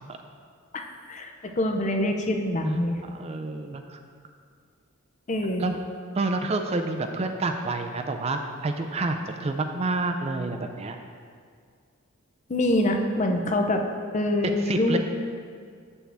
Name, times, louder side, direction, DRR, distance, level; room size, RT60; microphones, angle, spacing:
voice 1, 1.1-3.0 5.3-5.7 12.5-13.8 14.1-15.0, left 1 dB, 35° left, 4 dB, 0.5 m, -25 dB
voice 2, 2.7-4.0 5.6-5.8 6.1-11.0 14.4-15.0, right 2 dB, 30° right, 5 dB, 0.4 m, -29 dB
7.6 x 7.1 x 3.4 m, 2.1 s
head